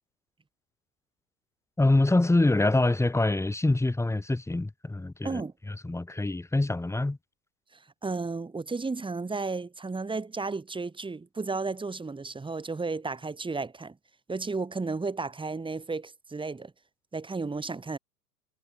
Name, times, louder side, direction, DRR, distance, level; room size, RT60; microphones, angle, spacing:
voice 1, 1.8-5.4 5.7-7.2, left 2 dB, 5° left, 6.4 m, -25 dB
voice 2, 8.0-14.0 14.3-16.7 17.1-18.0, right 3 dB, 10° right, 6.6 m, -33 dB
figure-of-eight pair, 100°, 48 cm